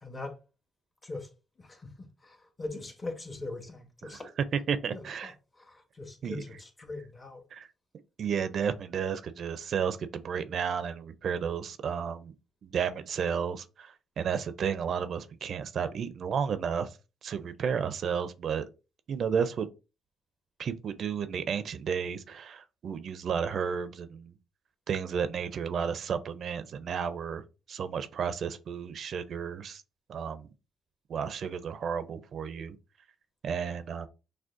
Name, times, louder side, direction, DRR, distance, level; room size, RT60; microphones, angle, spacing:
voice 1, 0.0-0.3 1.0-1.3 1.6-4.3 4.9-5.3 5.6-7.4, left 2 dB, 30° left, 1.1 m, -41 dB
voice 2, 4.7-5.3 6.2-6.4 7.5-7.7 8.2-12.3 12.6-17.0 17.2-18.7 19.1-19.7 20.6-24.3 24.9-29.8 30.1-30.5 31.1-32.8 33.4-34.1, right 7 dB, 60° right, 0.4 m, -32 dB
6.1 x 2.2 x 2.5 m
cardioid pair, 90°, 0 cm